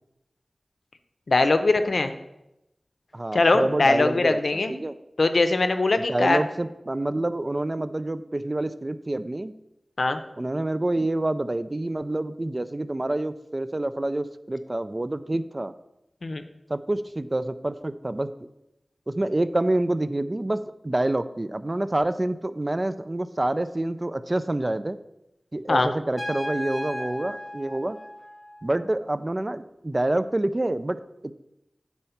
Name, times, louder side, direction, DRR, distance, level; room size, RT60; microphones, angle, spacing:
voice 1, 1.3-2.1 3.3-4.7 5.2-6.4 10.0-10.2 16.2-16.4 25.7-25.9, left 3 dB, 80° left, 9 dB, 0.6 m, -21 dB
voice 2, 3.1-5.0 6.0-9.5 10.4-15.7 16.7-18.3 19.1-25.0 25.5-28.0 28.6-31.3, right 1 dB, 35° right, 12 dB, 0.4 m, -27 dB
Trumpet, 26.2-28.8, left 1 dB, 20° left, 2.8 m, -35 dB
9.1 x 4.3 x 5.7 m, 0.89 s
wide cardioid pair, 50°, 0 cm